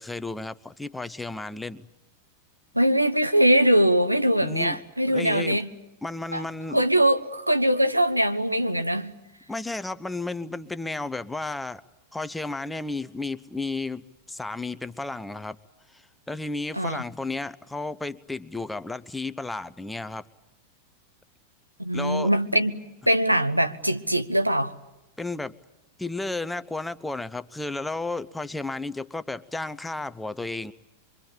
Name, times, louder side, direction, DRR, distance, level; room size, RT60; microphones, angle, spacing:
voice 1, 0.0-1.9 4.4-4.8 5.1-5.6 6.0-6.8 9.5-11.8 12.1-15.6 15.9-20.2 21.9-22.3 25.2-25.5 26.0-30.7, left 2 dB, 5° left, 0.8 m, -33 dB
voice 2, 2.7-5.7 6.3-6.4 6.7-9.1 16.7-17.0 21.8-24.7, right 1 dB, 90° right, 1.1 m, -22 dB
24.5 x 24.0 x 8.7 m
figure-of-eight pair, 90°, 0 cm